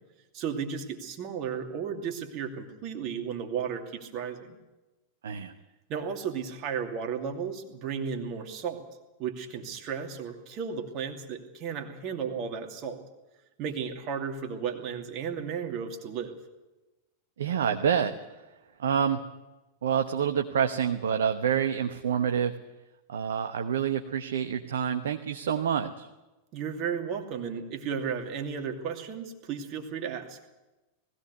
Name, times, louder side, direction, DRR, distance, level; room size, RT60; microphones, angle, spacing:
voice 1, 0.3-4.6 5.9-8.9 9.2-13.0 13.6-16.3 26.5-30.4, right 7 dB, 40° right, 4 dB, 2.6 m, -34 dB
voice 2, 17.4-18.4 18.8-19.2 19.8-22.5 23.1-26.1, right 8 dB, 65° right, 6 dB, 1.0 m, -27 dB
19.5 x 16.5 x 8.2 m, 1.1 s
figure-of-eight pair, 90°, 0 cm